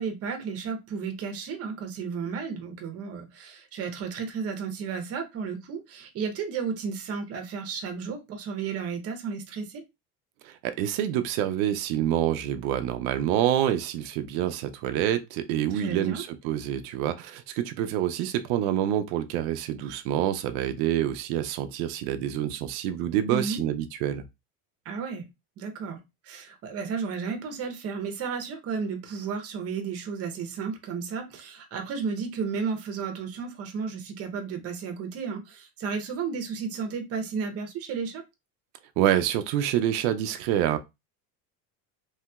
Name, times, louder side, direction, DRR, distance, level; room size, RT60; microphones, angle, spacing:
voice 1, 0.0-9.8 15.7-16.2 23.3-23.6 24.9-25.2 25.6-26.0 26.2-38.2, right 5 dB, 35° right, 0.8 m, -33 dB
voice 2, 10.4-24.2 39.0-40.8, right 11 dB, 90° right, 0.5 m, -27 dB
3.1 x 2.9 x 2.3 m
cardioid pair, 150°, 40 cm